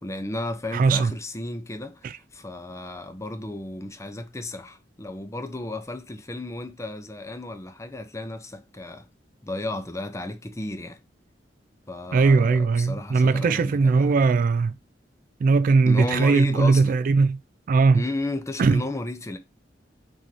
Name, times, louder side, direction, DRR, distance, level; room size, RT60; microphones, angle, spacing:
voice 1, 0.0-9.1 9.4-11.0 11.9-14.2 15.9-17.0 17.9-19.4, left 2 dB, 15° left, 0.6 m, -33 dB
voice 2, 0.7-1.1 2.0-2.1 12.1-14.8 15.4-17.4 17.7-18.0 18.6-18.8, right 4 dB, 50° right, 0.3 m, -19 dB
3.9 x 3.8 x 3.0 m
head